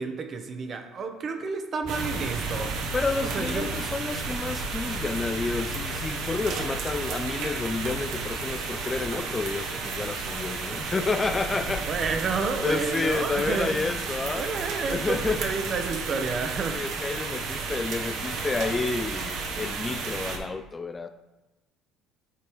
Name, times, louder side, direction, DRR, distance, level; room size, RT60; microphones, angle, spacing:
voice 1, 0.0-2.9 3.2-3.7 11.9-13.8 14.3-16.8, right 4 dB, 40° right, 6 dB, 0.8 m, -30 dB
sound 1, 1.8-9.3, left 3 dB, 10° right, 1.5 m, -41 dB
sound 2, 1.9-20.4, right 4 dB, 70° right, 0.9 m, -32 dB
voice 2, 2.9-11.9 12.6-14.5 14.9-15.4 16.7-21.1, left 3 dB, 20° left, 9 dB, 0.3 m, -30 dB
8.3 x 5.2 x 3.0 m, 1.1 s
cardioid pair, 110°, 0 cm